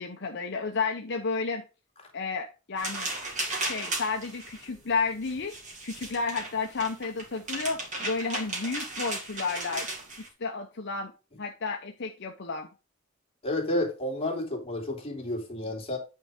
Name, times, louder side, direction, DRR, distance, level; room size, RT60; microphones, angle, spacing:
voice 1, 0.0-1.6 2.1-3.1 3.6-5.6 5.8-9.9 10.4-11.1 11.4-12.7, left 4 dB, 60° left, 0.8 m, -32 dB
sound 1, 2.8-10.3, right 2 dB, 40° right, 2.7 m, -36 dB
voice 2, 13.4-16.0, left 1 dB, 30° left, 2.6 m, -30 dB
9.0 x 4.7 x 5.1 m
head